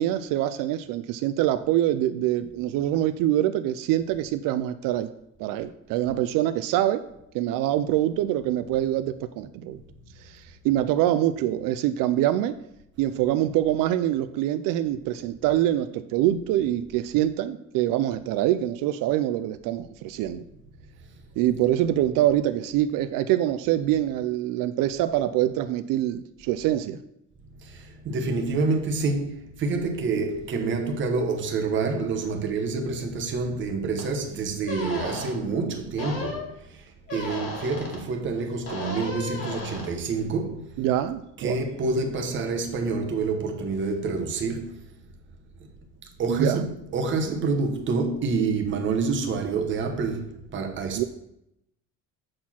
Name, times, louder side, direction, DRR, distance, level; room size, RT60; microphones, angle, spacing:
voice 1, 0.0-5.1 5.4-7.0 7.3-9.8 10.2-12.5 13.0-20.4 21.4-27.0 40.8-41.6 46.3-46.6 50.9-51.0, right 13 dB, 90° right, 0.5 m, -25 dB
voice 2, 27.6-40.8 41.4-44.9 46.2-51.0, right 4 dB, 35° right, 1.0 m, -27 dB
sound 1, 34.0-34.1 34.7-35.3 36.0-36.5 37.1-38.0 38.7-39.9, left 3 dB, 45° left, 2.2 m, -34 dB
7.6 x 4.3 x 5.8 m
cardioid pair, 175°, 32 cm